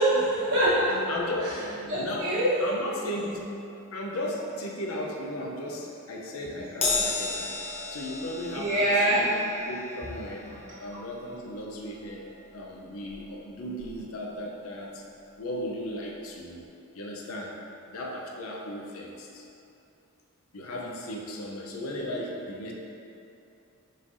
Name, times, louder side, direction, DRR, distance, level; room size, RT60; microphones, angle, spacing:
voice 1, 0.0-1.1 1.9-2.6 6.4-6.5 8.5-9.3 10.5-10.6 10.9-11.0, right 1 dB, 75° right, -11 dB, 1.0 m, -24 dB
voice 2, 1.1-1.5 2.0-3.5 3.9-7.5 7.9-8.9 9.2-9.3 9.7-10.4 10.8-12.3 12.5-15.0 15.4-16.6 16.9-17.5 17.9-19.4 20.5-22.7, left 1 dB, 85° left, -1 dB, 0.6 m, -36 dB
Crash cymbal, 6.8-13.4 13.8-14.0 15.0-15.1, left 3 dB, 30° left, 0.8 m, -35 dB
5.5 x 3.3 x 2.6 m, 2.7 s
head